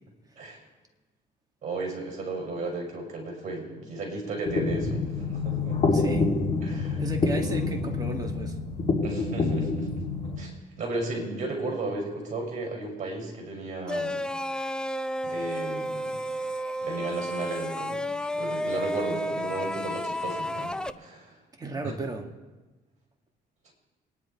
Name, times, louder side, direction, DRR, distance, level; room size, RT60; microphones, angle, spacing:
voice 1, 1.6-5.8 6.6-7.0 9.0-9.9 10.4-14.2 15.2-16.2 16.8-18.1 18.3-21.4 21.8-21.9, right 2 dB, 45° right, 1 dB, 6.4 m, -34 dB
sound 1, 4.5-10.4, left 3 dB, 40° left, 2.9 m, -27 dB
voice 2, 5.9-6.3 7.0-8.6 21.6-22.3, right 3 dB, 20° right, 3 dB, 2.1 m, -34 dB
sound 2, 13.9-20.9, equal, 5° left, 0.5 m, -31 dB
27.5 x 10.5 x 4.5 m, 1.2 s
cardioid pair, 110°, 17 cm